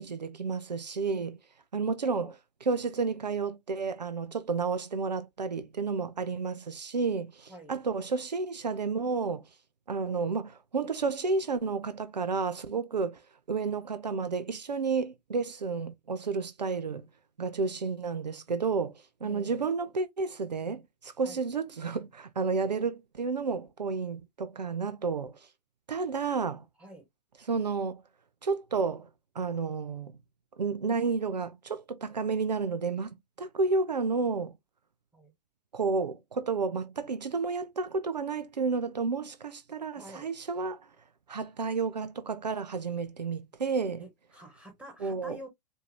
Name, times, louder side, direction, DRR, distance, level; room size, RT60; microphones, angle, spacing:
voice 1, 0.0-1.4 1.7-2.3 2.7-9.5 9.9-13.2 13.5-17.1 17.4-25.4 25.9-26.6 27.4-28.0 28.4-29.1 29.4-30.1 30.6-34.5 35.7-40.9 41.3-44.0 45.0-45.4, right 4 dB, 90° right, 0.5 m, -31 dB
voice 2, 2.0-2.3 7.5-7.7 19.2-19.7 21.2-21.4 26.8-27.0 35.1-35.3 40.0-40.3 44.0-45.5, equal, 5° right, 2.1 m, -47 dB
4.5 x 2.7 x 3.1 m
figure-of-eight pair, 95°, 21 cm